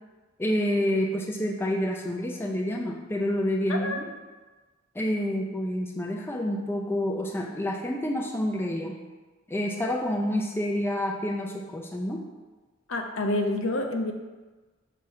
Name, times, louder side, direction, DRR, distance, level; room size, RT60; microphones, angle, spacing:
voice 1, 0.4-4.0 5.0-9.0 9.5-12.2, left 1 dB, 10° left, 1 dB, 0.4 m, -28 dB
voice 2, 3.7-4.0 12.9-14.1, left 2 dB, 70° left, 3 dB, 0.7 m, -28 dB
6.2 x 2.9 x 5.7 m, 1.3 s
head